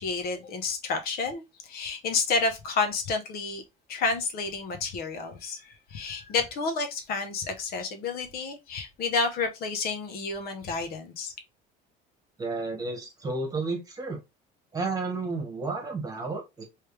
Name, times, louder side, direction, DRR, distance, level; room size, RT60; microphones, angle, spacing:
voice 1, 0.0-3.6 3.9-11.3, left 4 dB, 50° left, 0.8 m, -30 dB
voice 2, 12.4-14.2 14.7-16.6, right 3 dB, 20° right, 1.4 m, -32 dB
3.3 x 3.2 x 3.2 m
cardioid pair, 165°, 19 cm